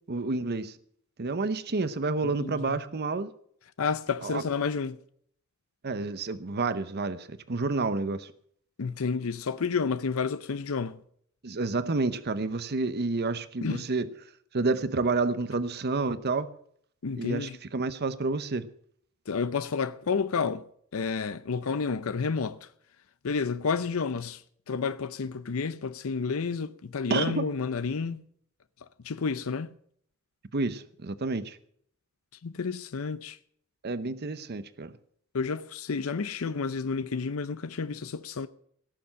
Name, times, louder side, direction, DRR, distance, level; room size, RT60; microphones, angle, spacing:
voice 1, 0.1-0.8 1.2-3.3 4.2-4.4 5.8-8.3 11.4-14.1 14.5-16.5 17.1-18.7 27.1-27.5 30.5-31.6 33.8-34.9, right 3 dB, 50° right, 0.8 m, -29 dB
voice 2, 2.2-2.8 3.8-5.0 8.8-11.0 13.6-13.9 17.0-17.6 19.3-20.7 20.9-22.7 23.2-24.4 24.7-28.2 29.0-29.7 32.4-33.4 35.3-38.5, left 5 dB, 85° left, 0.6 m, -30 dB
18.0 x 6.9 x 7.4 m
head